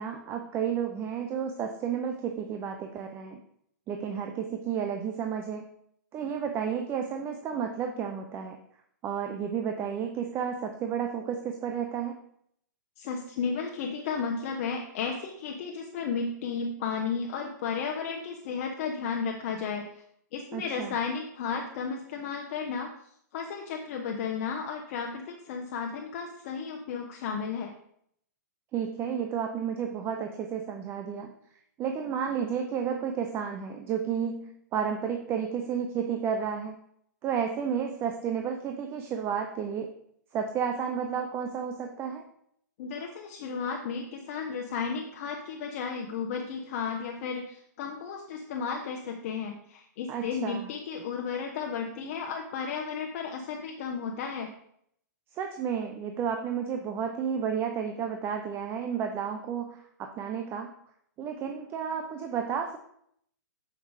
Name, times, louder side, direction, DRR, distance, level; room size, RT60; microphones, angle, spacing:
voice 1, 0.0-3.4 3.9-5.6 6.1-8.6 9.0-12.2 20.5-20.9 28.7-31.3 31.8-36.8 37.2-39.9 40.3-42.2 50.1-50.7 55.3-60.7 61.2-62.8, right 7 dB, 25° right, 4 dB, 0.7 m, -32 dB
voice 2, 13.0-19.8 20.3-22.9 23.3-27.7 42.8-54.5, left 5 dB, 45° left, 2 dB, 1.0 m, -33 dB
7.8 x 5.8 x 4.9 m, 0.70 s
hypercardioid pair, 145°, 10 cm